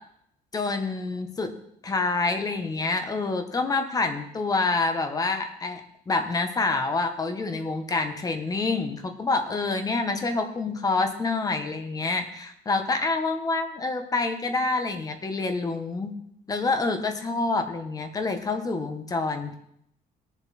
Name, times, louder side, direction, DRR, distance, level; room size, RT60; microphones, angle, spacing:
voice 1, 0.5-1.5 1.8-5.8 6.1-16.1 16.5-19.5, left 3 dB, 20° left, 6 dB, 1.2 m, -27 dB
18.5 x 7.3 x 4.3 m, 0.73 s
cardioid pair, 155°, 16 cm